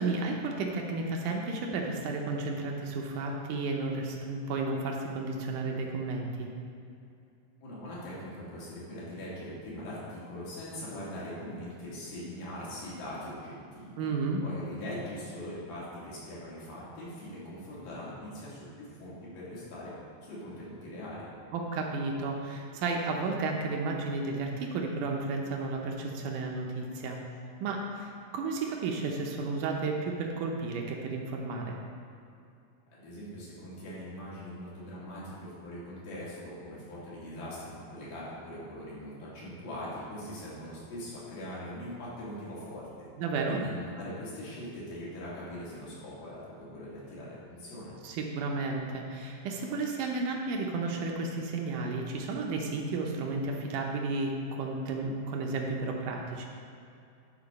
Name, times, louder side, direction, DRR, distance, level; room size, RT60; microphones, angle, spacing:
voice 1, 0.0-6.5 14.0-14.4 21.5-27.2 27.6-31.8 43.2-43.6 48.0-56.5, right 3 dB, 75° right, 0 dB, 2.2 m, -32 dB
voice 2, 7.6-14.1 14.4-19.9 20.2-21.3 32.9-42.8 43.5-48.0, left 1 dB, 75° left, -9 dB, 4.1 m, -41 dB
11.5 x 4.3 x 5.3 m, 2.6 s
omnidirectional pair, 4.0 m